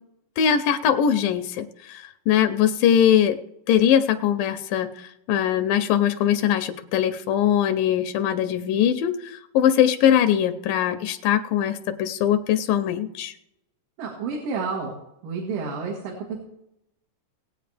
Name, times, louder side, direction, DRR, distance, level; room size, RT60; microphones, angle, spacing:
voice 1, 0.4-3.4 3.7-4.9 5.3-13.3, left 9 dB, 85° left, 9 dB, 2.3 m, -21 dB
voice 2, 14.0-16.4, right 4 dB, 80° right, -2 dB, 3.4 m, -30 dB
19.5 x 8.3 x 3.4 m, 0.81 s
omnidirectional pair, 3.8 m